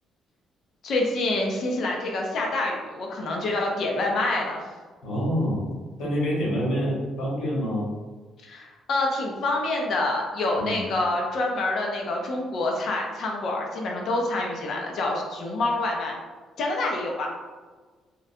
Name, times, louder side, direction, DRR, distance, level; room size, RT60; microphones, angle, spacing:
voice 1, 0.8-4.6 8.4-16.1 16.6-17.3, left 2 dB, 55° left, 0 dB, 0.5 m, -27 dB
voice 2, 5.0-5.7 6.0-7.9 10.6-10.9, equal, 75° left, -5 dB, 1.3 m, -26 dB
3.7 x 2.1 x 2.6 m, 1.4 s
cardioid pair, 155°, 0 cm